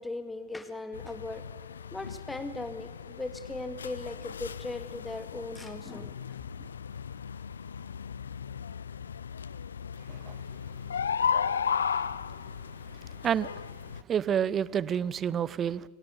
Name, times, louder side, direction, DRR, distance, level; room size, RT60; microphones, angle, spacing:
voice 1, 0.0-1.4 1.9-6.4, left 2 dB, 10° left, 9 dB, 2.0 m, -38 dB
sound 1, 0.9-14.0, left 7 dB, 70° left, 0.6 m, -35 dB
voice 2, 14.1-15.8, right 8 dB, 25° right, 20 dB, 0.8 m, -28 dB
26.5 x 18.0 x 8.2 m, 1.4 s
figure-of-eight pair, 90°, 0 cm